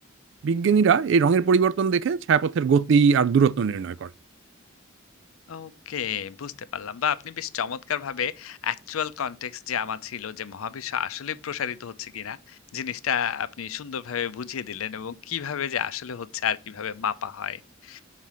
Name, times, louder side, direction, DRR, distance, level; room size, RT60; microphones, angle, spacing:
voice 1, 0.4-4.1, right 6 dB, 60° right, 0.3 m, -20 dB
voice 2, 5.5-18.0, left 8 dB, 90° left, 0.5 m, -31 dB
5.8 x 4.1 x 4.7 m
head